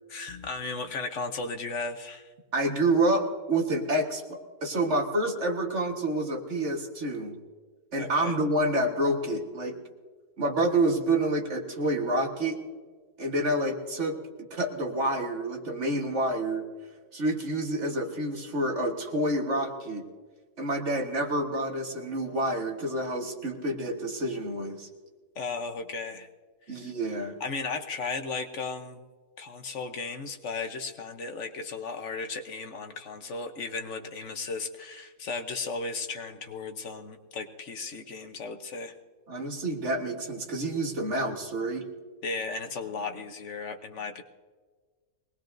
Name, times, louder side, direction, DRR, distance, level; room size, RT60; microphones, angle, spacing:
voice 1, 0.1-2.3 8.0-8.4 25.4-26.3 26.7-26.9 27.4-29.0 29.4-38.9 42.2-44.2, left 4 dB, 55° left, 6 dB, 1.1 m, -35 dB
voice 2, 2.5-7.3 7.9-9.8 10.4-12.6 13.2-16.6 17.1-20.0 20.6-24.9 26.7-27.4 39.3-41.9, right 1 dB, 50° right, 2 dB, 1.7 m, -28 dB
22.5 x 19.0 x 2.6 m, 1.5 s
omnidirectional pair, 1.6 m